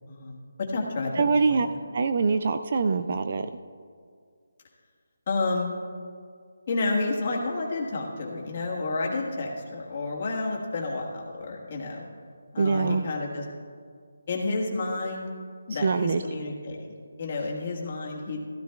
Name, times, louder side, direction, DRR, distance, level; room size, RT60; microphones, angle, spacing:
voice 1, 0.1-1.6 5.3-5.7 6.7-12.1 12.5-13.4 14.3-15.3 15.7-16.9 17.2-18.4, left 3 dB, 30° left, -2 dB, 1.5 m, -30 dB
voice 2, 1.2-1.7 1.9-3.5 12.6-13.0 15.7-16.2, right 4 dB, 35° right, 10 dB, 0.3 m, -24 dB
16.0 x 13.0 x 2.3 m, 2.1 s
hypercardioid pair, 175°, 0 cm